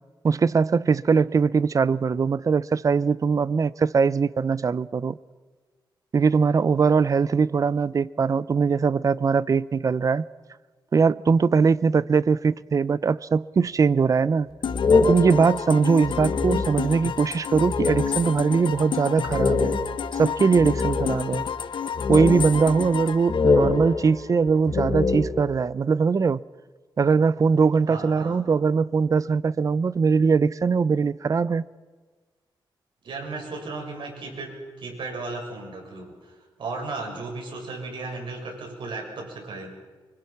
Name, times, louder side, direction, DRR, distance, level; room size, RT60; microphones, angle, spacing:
voice 1, 0.2-5.2 6.1-10.2 10.9-14.5 15.0-19.8 20.2-21.5 22.1-26.4 27.0-31.6, right 5 dB, 40° right, 0.6 m, -21 dB
sound 1, 14.6-24.3, left 8 dB, 70° left, 1.0 m, -31 dB
sound 2, 14.6-17.1 17.5-18.4 18.7-18.8 19.2-21.5 21.9-23.0 23.3-25.7, left 4 dB, 50° left, 1.8 m, -25 dB
voice 2, 27.9-28.5 33.0-39.7, right 3 dB, 70° right, 6.7 m, -35 dB
24.5 x 24.5 x 6.0 m
wide cardioid pair, 105°, 9 cm